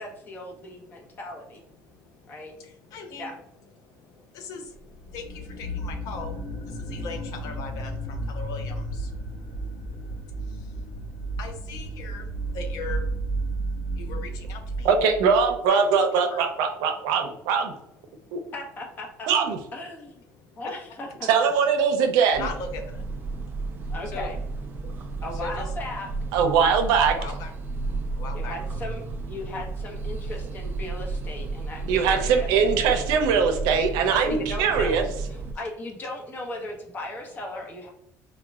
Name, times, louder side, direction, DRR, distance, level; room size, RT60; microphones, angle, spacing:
voice 1, 0.0-1.6 2.3-2.5 3.2-3.3 18.5-19.3 19.7-20.2 20.5-21.3 23.9-24.4 25.2-26.1 28.3-29.0 29.3-32.5 34.2-37.9, left 2 dB, 30° left, 0 dB, 0.7 m, -37 dB
voice 2, 1.8-3.3 3.8-13.4 13.9-14.9 15.7-15.8 16.1-16.5 18.1-18.5 20.3-20.6 22.4-23.5 23.8-24.3 24.8-25.1 25.3-25.7 27.1-27.5 28.1-28.5 35.5-35.6, left 4 dB, 65° left, 5 dB, 0.5 m, -40 dB
sound 1, 4.9-15.6, right 2 dB, 85° left, 1.1 m, -33 dB
voice 3, 14.8-17.7 18.3-18.4 19.3-19.6 21.3-22.5 26.3-27.2 31.9-35.0, right 6 dB, 80° right, 5 dB, 0.5 m, -21 dB
sound 2, 22.3-35.5, right 3 dB, 30° right, 0.4 m, -33 dB
4.0 x 2.1 x 2.3 m, 0.83 s
cardioid pair, 150°, 7 cm